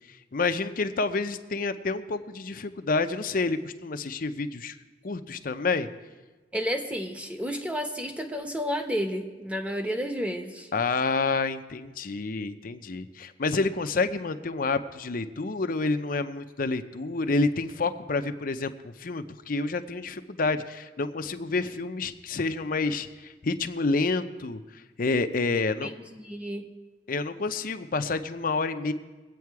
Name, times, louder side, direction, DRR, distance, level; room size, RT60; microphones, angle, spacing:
voice 1, 0.1-4.8 5.0-5.9 10.7-24.6 25.0-25.9 27.1-28.9, left 3 dB, 50° left, 9 dB, 0.6 m, -28 dB
voice 2, 6.5-10.7 25.5-25.9 26.2-26.7, equal, 5° right, 5 dB, 1.0 m, -31 dB
21.5 x 8.5 x 4.7 m, 1.3 s
head